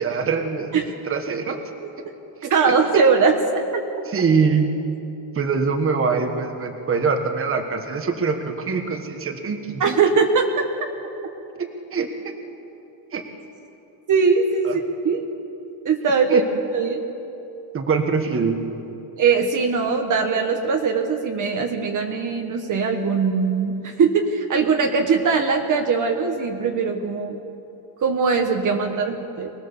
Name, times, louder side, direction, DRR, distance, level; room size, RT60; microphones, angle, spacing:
voice 1, 0.0-1.6 2.4-2.8 4.1-4.7 5.3-10.0 11.6-12.3 13.1-13.2 14.6-14.7 16.3-16.4 17.7-18.6, right 5 dB, 30° right, 5 dB, 1.5 m, -23 dB
voice 2, 2.5-3.8 9.8-10.6 14.1-15.3 15.8-16.4 16.7-17.0 19.2-27.3 28.0-29.5, right 5 dB, 45° right, 3 dB, 1.4 m, -21 dB
24.5 x 19.5 x 7.1 m, 2.9 s
cardioid pair, 170°, 42 cm